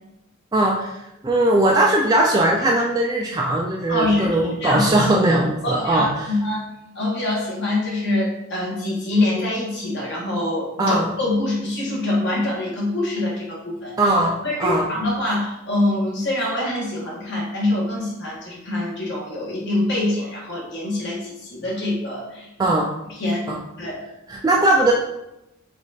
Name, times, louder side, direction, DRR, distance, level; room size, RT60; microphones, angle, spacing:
voice 1, 0.5-1.0 1.2-6.1 10.8-11.1 14.0-14.9 22.6-22.9 23.5-23.6 24.3-24.9, right 1 dB, 20° right, -1 dB, 0.3 m, -19 dB
voice 2, 3.9-5.1 5.6-6.7 6.9-13.9 14.4-22.7 23.1-23.5 23.8-24.0, left 1 dB, 55° left, -4 dB, 1.5 m, -24 dB
5.0 x 2.5 x 4.0 m, 0.88 s
head